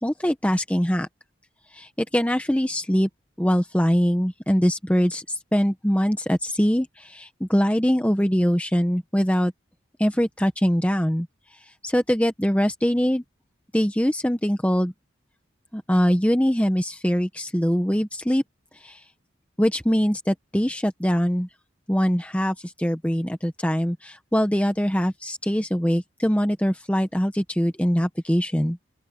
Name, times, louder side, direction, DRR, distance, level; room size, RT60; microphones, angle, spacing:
voice 1, 0.0-1.1 1.7-3.1 3.4-9.5 10.0-11.3 11.8-13.2 13.7-14.9 15.7-18.4 18.7-19.0 19.6-21.5 21.9-28.8, equal, 5° left, 1.0 m, -23 dB
open air
head